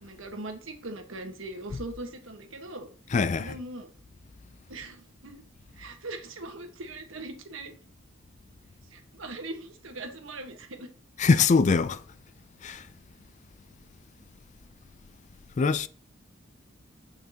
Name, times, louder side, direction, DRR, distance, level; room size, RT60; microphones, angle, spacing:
voice 1, 0.0-2.9 3.4-3.9 4.7-5.4 5.8-7.7 8.9-10.9, right 2 dB, 75° right, 1.4 m, -40 dB
voice 2, 3.1-3.6 11.2-12.0 12.6-12.8 15.6-15.9, left 4 dB, 35° left, 0.3 m, -22 dB
9.1 x 5.8 x 2.9 m
head